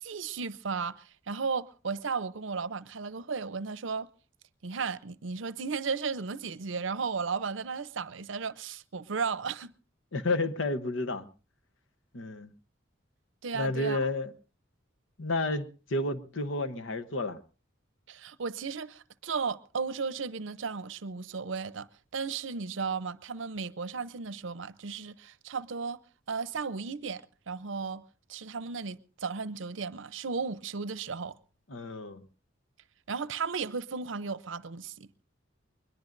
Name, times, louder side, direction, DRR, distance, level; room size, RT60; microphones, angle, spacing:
voice 1, 0.0-4.1 4.6-9.7 13.4-14.1 18.1-21.9 22.1-26.0 26.3-28.0 28.3-31.4 33.1-35.1, right 5 dB, 75° right, 0.7 m, -35 dB
voice 2, 10.1-11.3 12.1-12.5 13.5-14.3 15.2-17.4 31.7-32.2, left 2 dB, 75° left, 0.9 m, -31 dB
22.0 x 21.5 x 2.6 m
head